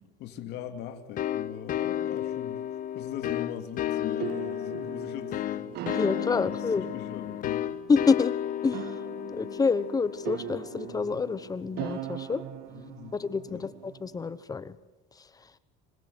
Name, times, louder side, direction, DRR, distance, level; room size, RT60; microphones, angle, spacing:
voice 1, 0.2-2.6 2.9-5.7 6.3-6.4 6.7-7.7 12.7-13.1 13.4-13.7, left 10 dB, 65° left, 7 dB, 2.7 m, -41 dB
sound 1, 1.2-11.6, left 11 dB, 50° left, 1.3 m, -33 dB
sound 2, 3.9-14.4, right 12 dB, 65° right, 1.7 m, -41 dB
voice 2, 5.9-6.9 7.9-8.3 8.6-8.8 9.3-12.4 13.1-14.7, left 4 dB, 20° left, 15 dB, 1.1 m, -27 dB
26.5 x 25.5 x 8.1 m, 1.0 s
cardioid pair, 130°, 18 cm